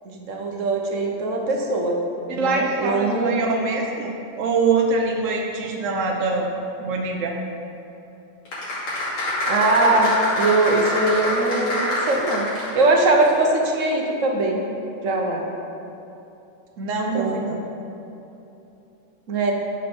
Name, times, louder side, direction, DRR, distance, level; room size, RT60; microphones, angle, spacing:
voice 1, 0.0-2.0 2.3-3.4 9.4-12.5 12.7-14.6 15.0-15.4 17.1-17.5 19.3-19.5, right 2 dB, 50° right, 1 dB, 1.0 m, -21 dB
voice 2, 2.4-6.5 6.8-7.4 16.8-17.6, right 3 dB, 80° right, 1 dB, 0.7 m, -24 dB
sound 1, 8.5-13.0 13.3-13.4, left 1 dB, 85° left, 3.4 m, -25 dB
10.5 x 4.9 x 6.1 m, 2.9 s
omnidirectional pair, 2.4 m